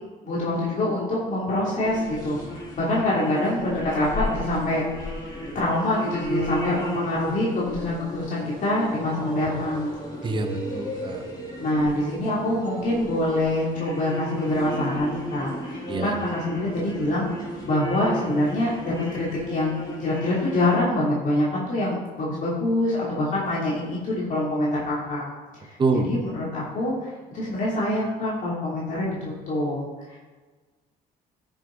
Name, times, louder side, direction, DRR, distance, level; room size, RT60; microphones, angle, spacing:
voice 1, 0.2-5.1 5.5-9.9 11.6-17.3 17.6-25.2 25.6-25.7 26.0-29.8 30.1-30.2, left 1 dB, 50° left, -6 dB, 3.0 m, -25 dB
sound 1, 1.8-20.8, equal, 25° left, 3.3 m, -35 dB
voice 2, 10.2-11.2 15.9-16.2 25.8-26.1, right 3 dB, 30° right, 6 dB, 1.1 m, -25 dB
12.5 x 6.5 x 3.9 m, 1.3 s
cardioid pair, 110°, 17 cm